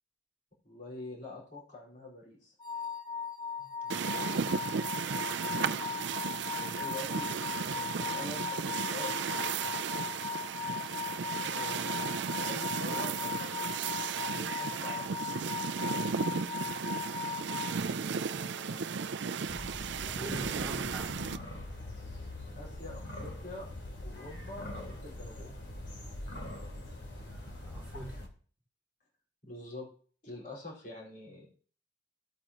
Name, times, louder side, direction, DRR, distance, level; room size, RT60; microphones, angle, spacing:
voice 1, 0.6-2.5 6.8-7.3 8.0-9.2 11.4-13.6 14.1-15.2 22.5-25.5 29.4-29.9 30.2-31.5, left 2 dB, 50° left, 4.7 m, -45 dB
sound 1, 2.6-17.8, left 6 dB, 25° left, 1.0 m, -38 dB
voice 2, 3.6-4.4 6.5-6.9 8.2-8.3 9.8-10.2 17.6-18.9 20.0-21.2 27.2-28.2, right 2 dB, 10° right, 3.2 m, -47 dB
sound 2, 3.9-21.4, right 6 dB, 70° right, 0.5 m, -35 dB
sound 3, 19.5-28.3, left 1 dB, 70° left, 3.0 m, -43 dB
16.5 x 8.8 x 3.0 m
head